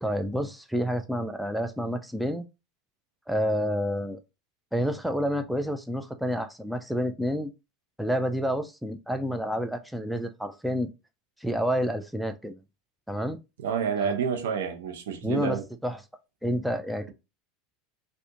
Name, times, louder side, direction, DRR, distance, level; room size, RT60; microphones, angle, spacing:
voice 1, 0.0-2.5 3.3-4.2 4.7-7.5 8.0-10.9 11.4-12.6 13.1-13.4 14.0-14.1 15.2-16.0 16.4-17.1, equal, ahead, 0.4 m, -29 dB
voice 2, 13.6-15.6, right 7 dB, 85° right, 0.8 m, -29 dB
2.8 x 2.5 x 3.6 m
supercardioid pair, 130°, 0 cm